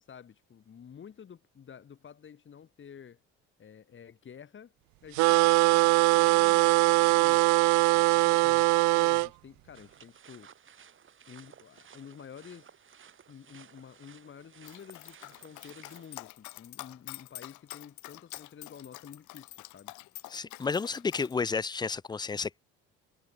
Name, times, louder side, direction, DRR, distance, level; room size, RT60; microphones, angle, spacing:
voice 1, 0.0-3.2 3.6-4.7 5.0-7.5 7.9-10.5 11.3-12.7 13.3-19.9, left 7 dB, 40° left, 8.0 m, -50 dB
sound 1, 5.2-9.3, right 24 dB, 70° right, 0.5 m, -22 dB
sound 2, 9.7-16.2, right 8 dB, 40° right, 7.4 m, -56 dB
Dog, 14.6-21.3, left 19 dB, 75° left, 4.3 m, -46 dB
voice 2, 20.3-22.6, left 5 dB, 15° left, 0.5 m, -31 dB
supercardioid pair, 95°, 30 cm